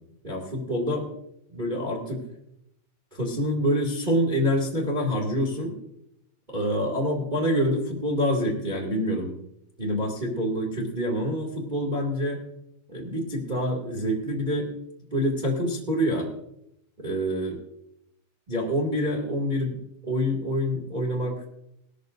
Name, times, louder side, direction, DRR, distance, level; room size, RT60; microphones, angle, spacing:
voice 1, 0.2-1.1 1.5-2.2 3.1-5.7 6.5-9.3 9.8-12.4 12.9-14.7 15.1-16.3 17.0-17.6 18.5-19.8 20.0-21.4, equal, 35° right, -1 dB, 0.7 m, -26 dB
19.0 x 13.5 x 2.6 m, 0.80 s
omnidirectional pair, 5.3 m